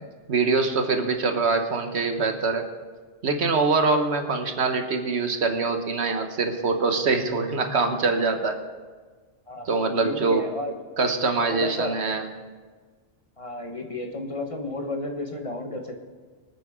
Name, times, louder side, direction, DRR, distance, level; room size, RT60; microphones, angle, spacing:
voice 1, 0.3-2.7 3.2-8.6 9.7-10.5 11.0-12.3, right 4 dB, 70° right, 6 dB, 1.4 m, -24 dB
voice 2, 9.5-10.7 11.5-12.0 13.4-16.0, left 1 dB, 30° left, 3 dB, 1.3 m, -32 dB
24.5 x 8.7 x 3.7 m, 1.4 s
omnidirectional pair, 1.2 m